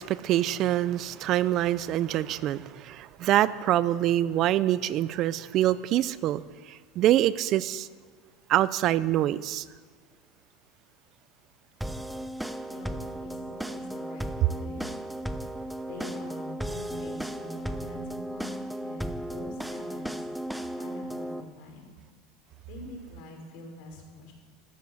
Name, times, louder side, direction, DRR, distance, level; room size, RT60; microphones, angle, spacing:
voice 1, 0.0-6.4 6.7-7.9 8.5-9.6, right 13 dB, 50° right, 0.5 m, -25 dB
sound 1, 11.8-21.4, right 1 dB, 5° right, 0.9 m, -35 dB
voice 2, 12.7-14.8 15.8-20.1 20.8-22.0 22.7-24.3, left 2 dB, 65° left, 5.2 m, -44 dB
14.5 x 14.0 x 7.2 m
supercardioid pair, 110°, 0 cm